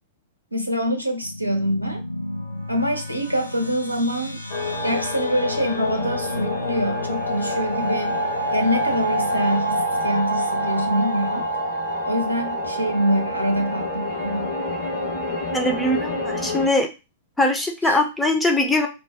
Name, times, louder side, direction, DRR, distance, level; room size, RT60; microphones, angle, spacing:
voice 1, 0.5-2.0 2.7-4.4 4.8-8.2 8.5-11.5 12.0-14.5 17.8-18.0, equal, 90° right, 3 dB, 0.6 m, -25 dB
sound 1, 1.2-12.0, left 2 dB, 90° left, 0.5 m, -35 dB
sound 2, 4.5-16.7, equal, 60° left, 1.1 m, -26 dB
voice 2, 15.5-16.9 17.4-18.9, left 1 dB, 5° left, 3 dB, 0.6 m, -21 dB
2.4 x 2.1 x 3.4 m, 0.28 s
figure-of-eight pair, 100°, 0 cm